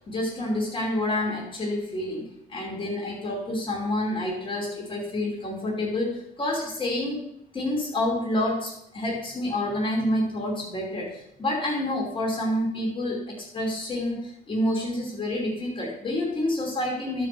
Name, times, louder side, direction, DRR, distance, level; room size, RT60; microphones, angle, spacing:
voice 1, 0.1-7.2 7.5-17.3, left 1 dB, 30° left, -1 dB, 2.9 m, -28 dB
12.0 x 5.2 x 6.8 m, 0.77 s
cardioid pair, 110°, 17 cm